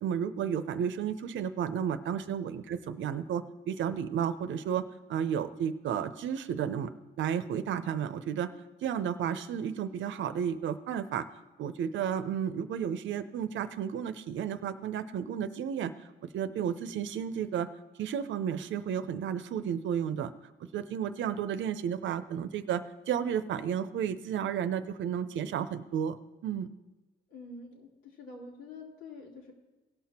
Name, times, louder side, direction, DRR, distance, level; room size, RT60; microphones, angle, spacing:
voice 1, 0.0-4.8 5.1-6.9 7.2-8.5 8.8-11.3 11.6-15.9 16.3-17.7 18.0-20.3 20.7-26.2 26.4-26.7, right 8 dB, 70° right, 12 dB, 0.7 m, -32 dB
voice 2, 27.3-29.5, left 3 dB, 90° left, -2 dB, 2.9 m, -47 dB
17.5 x 6.0 x 4.3 m, 1.2 s
cardioid pair, 90°, 20 cm